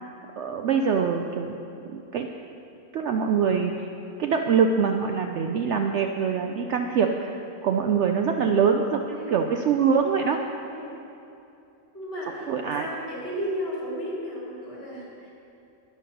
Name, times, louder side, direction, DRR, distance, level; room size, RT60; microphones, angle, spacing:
voice 1, 0.4-1.6 1.9-2.3 2.9-3.9 4.2-10.4 12.5-12.9, right 6 dB, 65° right, 4 dB, 0.7 m, -24 dB
voice 2, 10.7-11.0 11.9-15.3, equal, 40° left, -6 dB, 3.4 m, -34 dB
11.5 x 10.0 x 5.4 m, 2.8 s
omnidirectional pair, 1.5 m